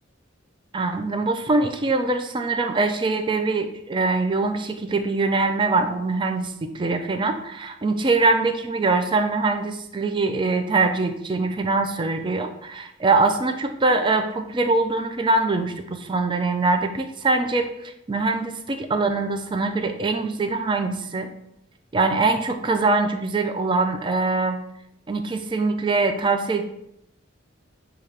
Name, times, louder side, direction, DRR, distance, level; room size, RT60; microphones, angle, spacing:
voice 1, 0.7-21.3 21.9-24.6 25.1-26.6, right 3 dB, 25° right, 6 dB, 0.4 m, -23 dB
6.8 x 2.4 x 3.3 m, 0.79 s
head